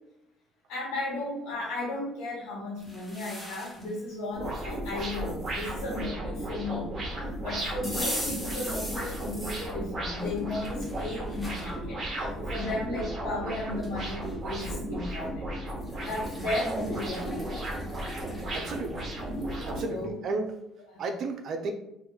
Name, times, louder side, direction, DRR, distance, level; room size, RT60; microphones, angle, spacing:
voice 1, 0.7-15.5 16.0-17.6 19.8-20.2 20.9-21.0, left 2 dB, 80° left, -8 dB, 1.2 m, -35 dB
sound 1, 2.8-3.9 4.4-6.0 7.8-9.7 10.3-11.7 12.3-12.4 13.5-13.6 13.8-14.4 15.7-19.7, equal, 5° left, 1.0 m, -40 dB
sound 2, 4.3-19.8, right 1 dB, 35° right, 1.1 m, -35 dB
voice 2, 18.5-19.0 19.7-20.5 21.0-21.7, right 3 dB, 55° right, 5 dB, 0.6 m, -33 dB
2.9 x 2.5 x 3.7 m, 0.86 s
cardioid pair, 105°, 0 cm